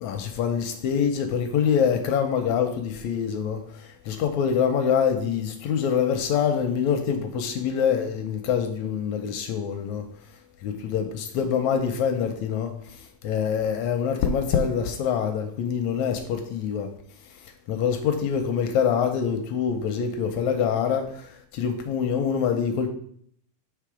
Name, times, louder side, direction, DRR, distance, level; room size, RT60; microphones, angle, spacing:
voice 1, 0.0-10.0 10.6-16.9 17.4-22.9, left 7 dB, 80° left, 1.6 m, -25 dB
7.7 x 3.4 x 4.8 m
omnidirectional pair, 3.8 m